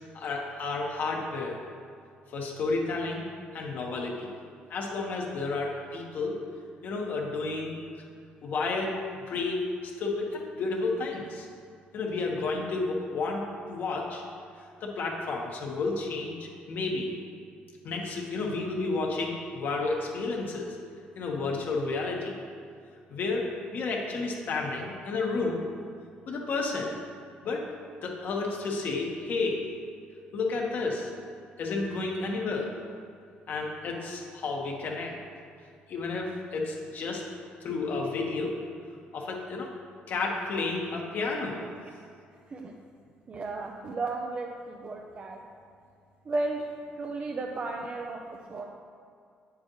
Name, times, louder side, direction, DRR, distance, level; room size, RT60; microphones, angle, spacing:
voice 1, 0.1-1.6 2.3-3.2 3.5-4.3 4.7-6.4 6.8-7.7 8.4-8.9 9.3-9.6 10.0-11.5 11.9-14.2 14.8-16.3 16.7-17.1 17.8-20.8 21.1-22.4 23.1-25.6 26.3-26.9 27.4-27.6 28.0-29.6 30.3-31.1 31.6-32.7 33.5-35.2 35.9-37.2 37.6-38.5 39.1-39.7 40.1-41.6, left 3 dB, 60° left, -1 dB, 1.4 m, -31 dB
voice 2, 43.3-45.4 46.2-46.7 47.0-48.2 48.5-48.6, right 3 dB, 40° right, 1 dB, 0.6 m, -34 dB
8.6 x 7.5 x 3.1 m, 2.3 s
cardioid pair, 95°, 4 cm